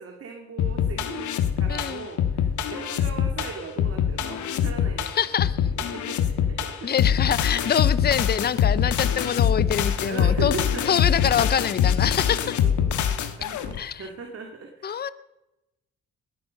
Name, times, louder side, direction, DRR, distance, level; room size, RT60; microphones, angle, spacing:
voice 1, 0.0-5.2 5.8-7.0 10.0-11.0 12.2-15.1, right 4 dB, 50° right, 3 dB, 2.4 m, -38 dB
sound 1, 0.6-13.8, left 8 dB, 75° left, 1.5 m, -24 dB
voice 2, 1.7-2.1 5.1-5.7 6.8-10.5 10.9-12.6 13.8-14.1 14.8-15.1, left 8 dB, 30° left, 16 dB, 0.7 m, -25 dB
20.0 x 9.4 x 6.6 m, 0.94 s
cardioid pair, 90°, 30 cm